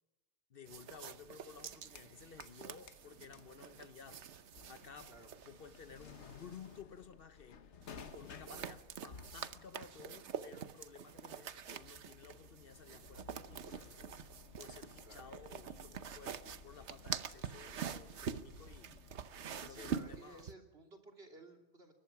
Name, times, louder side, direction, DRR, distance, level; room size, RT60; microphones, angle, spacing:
voice 1, 0.5-5.2 5.4-7.8 8.1-14.2 14.6-20.4, left 6 dB, 55° left, 1.0 m, -55 dB
sound 1, 0.7-6.8 7.8-20.5, right 7 dB, 80° right, 1.2 m, -46 dB
sound 2, 1.7-2.6 2.9-20.3, left 6 dB, 85° left, 1.4 m, -57 dB
voice 2, 19.6-21.9, right 2 dB, 65° right, 3.3 m, -56 dB
22.0 x 20.0 x 5.8 m
omnidirectional pair, 1.1 m